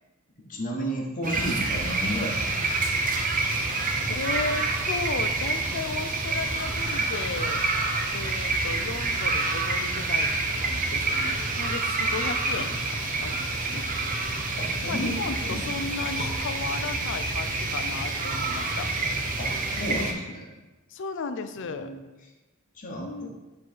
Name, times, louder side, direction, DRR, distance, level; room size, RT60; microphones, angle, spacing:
voice 1, 0.5-2.5 14.5-15.1 15.5-15.6 19.4-20.5 21.7-22.0 22.8-23.3, equal, 40° left, -1 dB, 1.1 m, -32 dB
sound 1, 1.2-20.1, right 3 dB, 40° right, 0.7 m, -28 dB
voice 2, 4.1-7.6 8.1-13.9 14.9-18.9 20.9-21.9 23.0-23.3, left 4 dB, 60° left, 9 dB, 0.4 m, -35 dB
7.2 x 3.1 x 4.4 m, 1.1 s
head